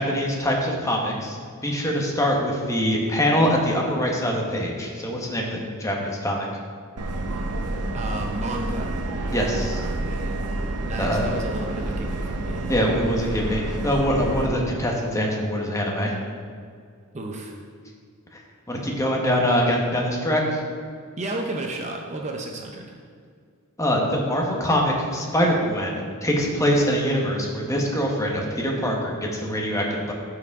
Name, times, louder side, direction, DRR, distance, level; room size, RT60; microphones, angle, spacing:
voice 1, 0.0-1.4 1.6-6.5 9.3-9.8 11.0-11.2 12.7-16.2 18.7-20.6 23.8-30.1, equal, 15° left, -1 dB, 1.1 m, -23 dB
Subway metro underground, 7.0-14.5, right 2 dB, 85° right, 0.7 m, -29 dB
voice 2, 7.9-8.9 10.8-12.6 17.1-17.6 21.2-23.0, right 2 dB, 30° right, 2 dB, 0.7 m, -32 dB
14.0 x 4.8 x 3.6 m, 2.1 s
head